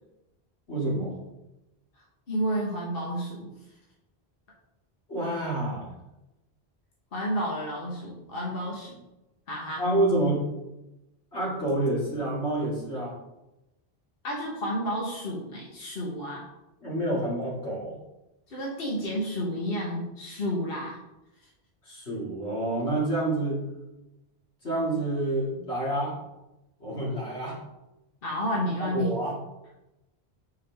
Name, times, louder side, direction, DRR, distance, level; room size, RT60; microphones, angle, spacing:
voice 1, 0.7-1.2 5.1-5.9 9.8-10.4 11.3-13.1 16.8-18.0 21.8-23.6 24.6-26.2 26.8-27.6 28.8-29.4, right 1 dB, 85° left, -6 dB, 2.7 m, -28 dB
voice 2, 2.3-3.5 7.1-9.0 9.5-9.8 14.2-16.4 18.5-21.0 28.2-29.1, equal, 60° left, -3 dB, 1.4 m, -31 dB
7.1 x 4.8 x 3.5 m, 0.95 s
omnidirectional pair, 1.1 m